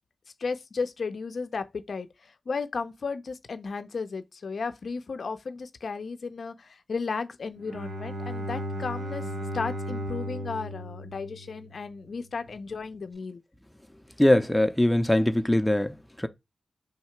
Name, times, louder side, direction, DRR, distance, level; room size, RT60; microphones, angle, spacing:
voice 1, 0.4-13.4, left 4 dB, 70° left, 0.4 m, -34 dB
Bowed string instrument, 7.6-12.1, equal, 80° right, 0.6 m, -35 dB
voice 2, 14.2-16.3, left 1 dB, 10° left, 0.5 m, -22 dB
3.4 x 2.8 x 4.4 m
cardioid pair, 65°, 0 cm